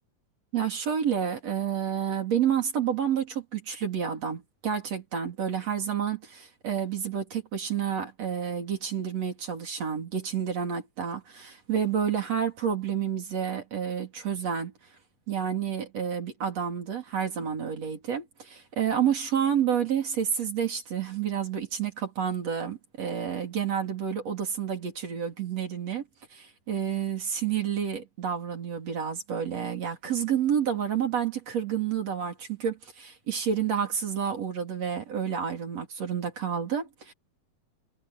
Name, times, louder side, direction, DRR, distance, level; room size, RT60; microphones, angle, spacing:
voice 1, 0.5-14.7 15.3-26.0 26.3-37.1, right 8 dB, 45° right, 4.3 m, -29 dB
omnidirectional pair, 4.2 m